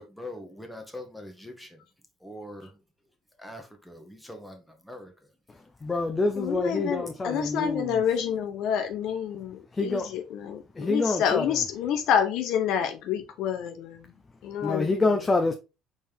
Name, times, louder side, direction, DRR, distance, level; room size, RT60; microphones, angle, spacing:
voice 1, 0.0-1.8 2.2-2.8 3.4-5.3, left 1 dB, 5° left, 1.3 m, -43 dB
voice 2, 5.5-8.0 9.7-10.1 10.7-11.4 14.6-15.5, left 3 dB, 25° left, 0.7 m, -26 dB
voice 3, 6.3-15.1, left 8 dB, 70° left, 0.7 m, -28 dB
4.2 x 3.7 x 3.4 m
supercardioid pair, 85°, 0 cm